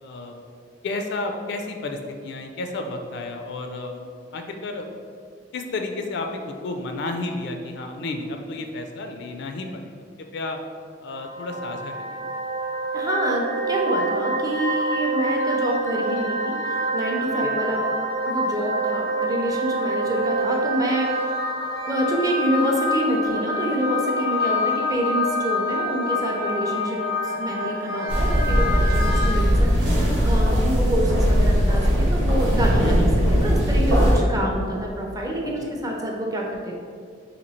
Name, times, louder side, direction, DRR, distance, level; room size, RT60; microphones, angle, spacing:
voice 1, 0.0-0.4 0.8-4.0 4.3-4.9 5.5-10.0 10.3-10.6 11.0-12.4 17.3-17.6 32.8-33.1 35.4-35.7, left 2 dB, 65° left, 5 dB, 0.4 m, -32 dB
sound 1, 11.1-29.3, equal, 60° right, 0.8 m, -26 dB
voice 2, 12.9-17.9 18.3-21.3 21.9-36.7, equal, 20° right, -1 dB, 0.5 m, -27 dB
sound 2, 28.1-34.2, equal, 85° right, 1.0 m, -19 dB
2.9 x 2.7 x 4.1 m, 2.1 s
head